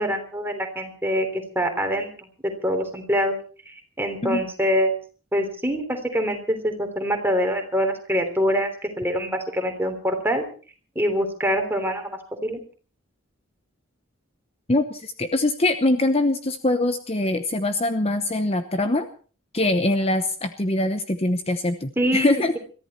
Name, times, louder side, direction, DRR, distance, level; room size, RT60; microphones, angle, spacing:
voice 1, 0.0-3.4 3.7-5.0 5.3-8.7 9.0-10.4 10.9-12.6 22.0-22.3, equal, 10° right, 4 dB, 3.2 m, -25 dB
voice 2, 14.7-19.1 19.5-22.5, left 2 dB, 30° left, 9 dB, 0.9 m, -23 dB
22.5 x 14.5 x 4.3 m, 0.39 s
head